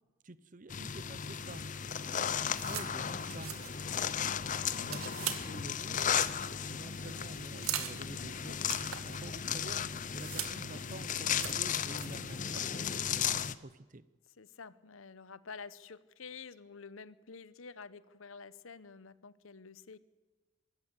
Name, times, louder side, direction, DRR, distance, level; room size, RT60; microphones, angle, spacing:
voice 1, 0.2-1.6 2.6-3.5 4.8-6.0 6.7-14.0, right 2 dB, 40° right, 16 dB, 0.8 m, -49 dB
sound 1, 0.7-13.5, left 8 dB, 35° left, 0.6 m, -35 dB
sound 2, 1.3-12.6, right 9 dB, 90° right, 2.0 m, -44 dB
voice 2, 5.0-5.3 7.0-7.2 14.4-20.0, left 5 dB, 75° left, 17 dB, 0.8 m, -49 dB
24.0 x 13.5 x 8.2 m, 1.3 s
head